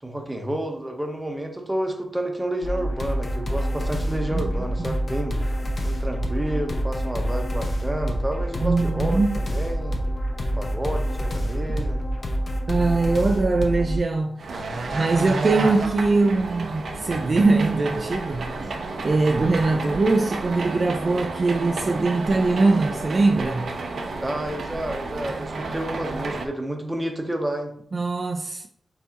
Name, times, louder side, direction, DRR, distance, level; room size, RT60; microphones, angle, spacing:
voice 1, 0.0-5.4 5.8-10.0 10.5-12.0 24.2-27.7, right 1 dB, 10° right, 0.8 m, -30 dB
sound 1, 2.6-14.0, equal, 50° left, 0.7 m, -27 dB
voice 2, 8.6-9.4 12.7-14.5 14.9-18.5 19.0-23.7 27.9-28.7, right 3 dB, 45° right, 0.4 m, -22 dB
sound 2, 14.4-26.5, right 3 dB, 80° right, 0.7 m, -31 dB
4.5 x 4.1 x 2.8 m
wide cardioid pair, 105°, 0 cm